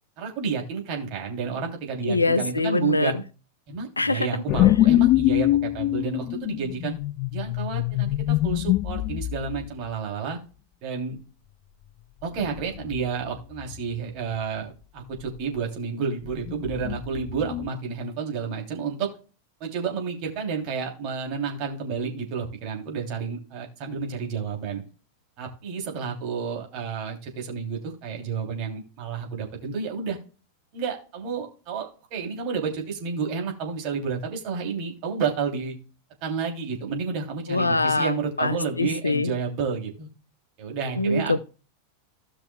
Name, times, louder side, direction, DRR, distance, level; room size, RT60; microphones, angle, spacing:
voice 1, 0.2-3.1 3.7-6.9 7.3-10.4 10.8-11.2 12.2-19.1 19.6-24.8 25.4-30.2 30.7-35.7 36.2-40.1 40.6-41.3, right 5 dB, 40° right, 3.0 m, -30 dB
voice 2, 2.0-3.1 4.0-4.3 37.5-39.3 41.0-41.4, left 3 dB, 80° left, 0.7 m, -24 dB
sound 1, 4.5-9.7 12.4-13.1 13.3-13.8 16.3-17.7, left 16 dB, 40° left, 0.3 m, -24 dB
16.5 x 5.9 x 2.3 m
figure-of-eight pair, 90°, 0 cm